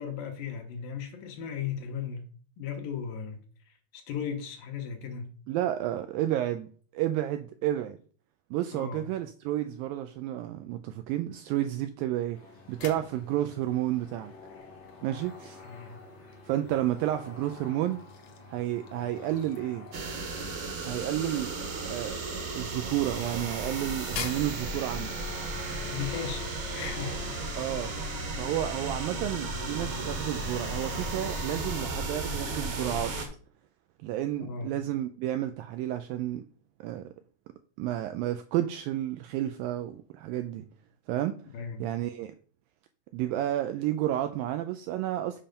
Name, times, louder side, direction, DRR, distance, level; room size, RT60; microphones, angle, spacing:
voice 1, 0.0-2.3 2.6-5.3 8.7-9.1 15.6-16.0 25.7-27.2 34.4-34.7 41.5-41.9, left 7 dB, 70° left, 2.4 m, -37 dB
voice 2, 5.5-8.0 8.5-12.4 12.7-14.3 15.0-15.6 16.5-18.0 18.5-19.9 20.8-21.5 21.9-22.2 22.5-25.2 27.6-27.9 28.4-33.1 34.0-36.4 36.8-37.1 37.8-40.7 41.1-41.4 41.8-42.3 43.1-45.4, right 13 dB, 85° right, 2.0 m, -31 dB
sound 1, 12.3-27.3, left 4 dB, 45° left, 0.8 m, -49 dB
sound 2, 12.4-25.4, left 6 dB, 90° left, 1.4 m, -48 dB
sound 3, 19.9-33.3, right 2 dB, 55° right, 1.5 m, -34 dB
7.5 x 5.6 x 5.2 m
omnidirectional pair, 4.6 m